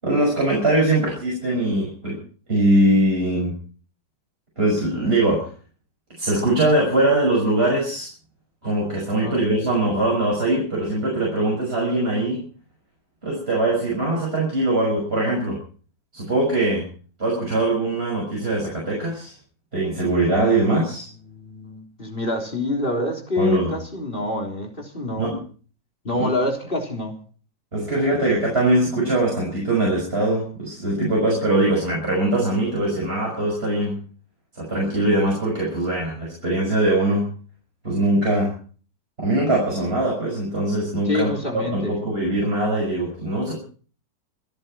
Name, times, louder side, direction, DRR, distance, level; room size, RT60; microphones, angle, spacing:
voice 1, 0.0-2.2 2.5-3.5 4.6-5.5 6.2-8.1 8.6-12.4 13.2-15.6 16.1-16.9 17.2-19.3 19.7-21.1 23.4-23.7 25.2-25.4 26.1-26.3 27.7-34.0 34.5-37.3 37.8-38.5 39.2-43.6, right 1 dB, 30° right, -3 dB, 6.5 m, -21 dB
voice 2, 9.2-9.6 21.3-25.3 26.0-27.2 41.1-42.0, left 1 dB, 30° left, 1 dB, 3.8 m, -26 dB
28.0 x 10.5 x 4.5 m, 0.41 s
omnidirectional pair, 1.9 m